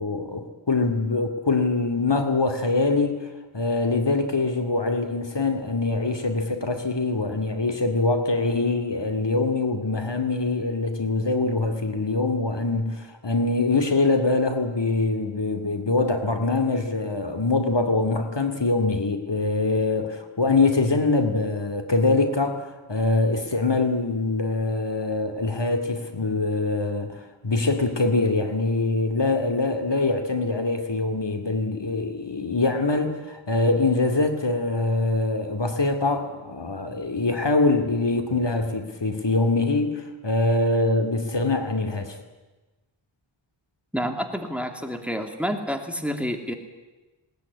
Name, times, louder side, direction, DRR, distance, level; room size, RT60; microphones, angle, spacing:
voice 1, 0.0-3.3 3.5-39.9 40.2-42.2, left 3 dB, 60° left, 6 dB, 2.6 m, -24 dB
voice 2, 43.9-46.5, equal, 5° right, 5 dB, 2.8 m, -29 dB
20.0 x 19.5 x 9.8 m, 1.2 s
wide cardioid pair, 65°, 48 cm